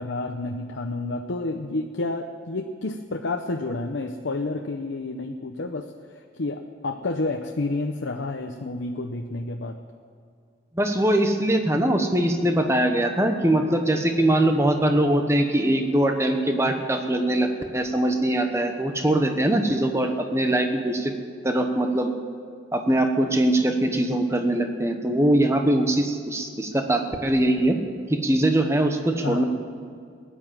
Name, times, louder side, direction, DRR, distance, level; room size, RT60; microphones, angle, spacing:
voice 1, 0.0-5.9 6.4-9.8 29.2-29.4, left 2 dB, 85° left, 4 dB, 0.8 m, -30 dB
voice 2, 10.7-21.1 21.4-22.1 22.7-27.8 28.1-29.4, right 1 dB, 15° right, 5 dB, 1.1 m, -22 dB
16.0 x 10.0 x 7.5 m, 2.2 s
head